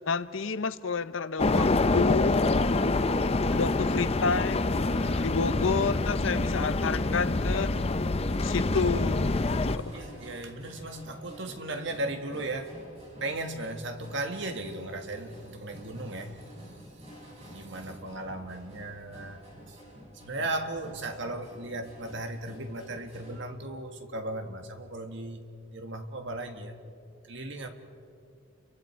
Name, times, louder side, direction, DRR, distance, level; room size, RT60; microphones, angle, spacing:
voice 1, 0.1-2.5 3.5-4.8 5.2-7.7 8.4-10.0, left 5 dB, 70° left, 14 dB, 0.7 m, -30 dB
sound 1, 1.4-9.8, left 2 dB, 30° left, 0.6 m, -26 dB
voice 2, 4.9-5.4 9.9-12.7 13.2-19.8 20.1-25.4 25.7-26.8 27.3-27.7, right 2 dB, 60° right, 5 dB, 1.8 m, -37 dB
sound 2, 9.2-23.4, equal, 30° right, 6.6 m, -50 dB
29.5 x 24.0 x 4.7 m, 2.4 s
head